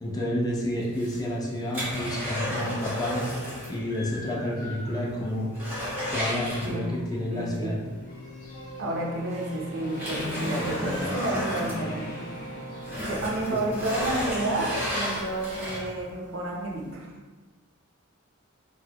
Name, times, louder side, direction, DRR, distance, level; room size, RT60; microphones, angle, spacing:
voice 1, 0.0-3.2 3.7-5.5 6.1-7.8 13.5-13.6, left 1 dB, 20° left, -3 dB, 0.5 m, -30 dB
sound 1, 0.8-3.8 4.1-4.2 4.7-4.8 5.1-7.1 8.6-8.7 9.3-12.4 12.8-16.1 16.6-16.7, equal, 10° right, 1.5 m, -33 dB
Keyboard (musical), 1.3-16.4, equal, 75° left, 0.4 m, -43 dB
Human voice / Motorcycle, 2.8-2.9 3.4-5.2 5.5-14.1, equal, 45° left, 1.1 m, -39 dB
voice 2, 7.3-7.7 8.8-12.1 13.0-17.1, right 1 dB, 65° right, -2 dB, 0.6 m, -31 dB
3.8 x 2.1 x 2.9 m, 1.4 s
head